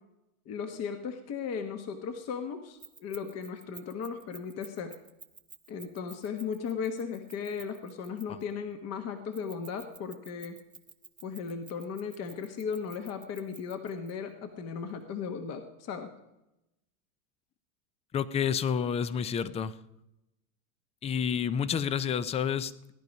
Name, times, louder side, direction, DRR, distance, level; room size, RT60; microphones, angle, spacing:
voice 1, 0.5-5.0 5.7-10.6 11.2-16.1, left 6 dB, 35° left, 7 dB, 1.2 m, -36 dB
Keys jangling, 2.8-8.5 9.3-14.1, right 5 dB, 10° right, 1.0 m, -51 dB
voice 2, 18.1-19.8 21.0-22.7, left 7 dB, 15° left, 16 dB, 0.4 m, -29 dB
17.5 x 11.0 x 5.3 m, 0.93 s
supercardioid pair, 120°, 42 cm